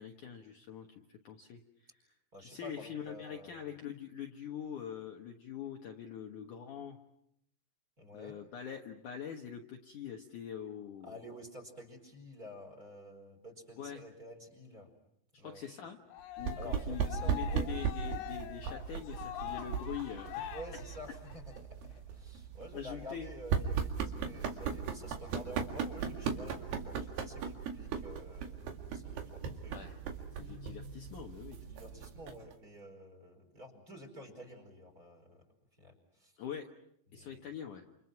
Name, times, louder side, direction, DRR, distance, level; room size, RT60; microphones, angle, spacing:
voice 1, 0.0-1.9 2.4-7.0 8.1-11.2 13.8-14.0 15.4-16.0 16.4-20.5 22.7-23.3 29.7-29.9 30.4-31.6 36.4-36.7 37.1-37.8, left 8 dB, 60° left, 3 dB, 2.4 m, -44 dB
voice 2, 2.3-3.7 8.0-8.4 11.0-14.9 15.4-15.6 16.6-17.7 20.5-29.8 30.4-30.5 31.6-35.4 35.7-36.4 37.1-37.5, equal, 20° right, 5 dB, 5.0 m, -50 dB
Cheering, 16.1-21.6, left 12 dB, 75° left, 4.2 m, -44 dB
sound 1, 16.4-32.5, right 7 dB, 70° right, 4.1 m, -38 dB
29.0 x 29.0 x 6.0 m, 0.75 s
omnidirectional pair, 5.0 m